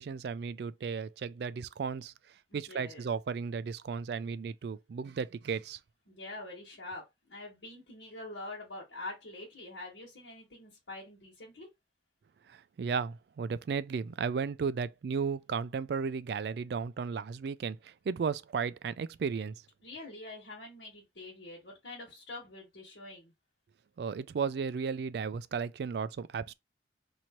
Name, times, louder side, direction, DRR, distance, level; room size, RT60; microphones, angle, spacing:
voice 1, 0.0-2.1 2.5-5.8 12.5-19.5 24.0-26.5, right 5 dB, 60° right, 0.3 m, -34 dB
voice 2, 2.5-3.1 6.1-11.7 19.8-23.3, left 2 dB, 70° left, 1.5 m, -45 dB
3.0 x 2.7 x 4.3 m
head